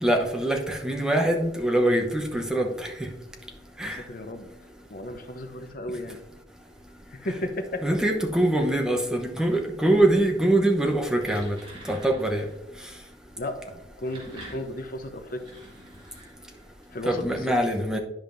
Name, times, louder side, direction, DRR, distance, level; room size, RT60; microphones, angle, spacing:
voice 1, 0.0-2.9 3.8-4.0 7.8-11.6 11.9-12.4 17.0-18.0, right 1 dB, 5° right, 2 dB, 0.8 m, -23 dB
voice 2, 3.8-4.5 4.9-6.2 7.1-7.8 13.4-15.4 16.9-17.5, left 1 dB, 55° left, 6 dB, 0.8 m, -34 dB
sound 1, 11.1-12.6 13.8-16.8, right 1 dB, 30° right, 1.9 m, -46 dB
10.5 x 5.1 x 2.6 m, 0.93 s
head